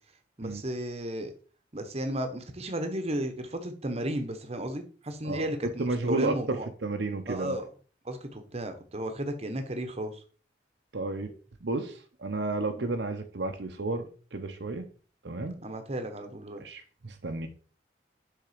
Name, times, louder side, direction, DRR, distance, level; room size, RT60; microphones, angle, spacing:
voice 1, 0.4-1.3 1.7-6.7 7.3-7.7 8.0-10.2 12.7-12.9 15.6-16.6, right 1 dB, 35° right, 1.0 m, -34 dB
voice 2, 5.8-7.5 10.9-11.3 11.6-14.9 15.2-15.6 16.6-17.5, right 2 dB, 70° right, 0.8 m, -32 dB
6.8 x 3.7 x 5.0 m
head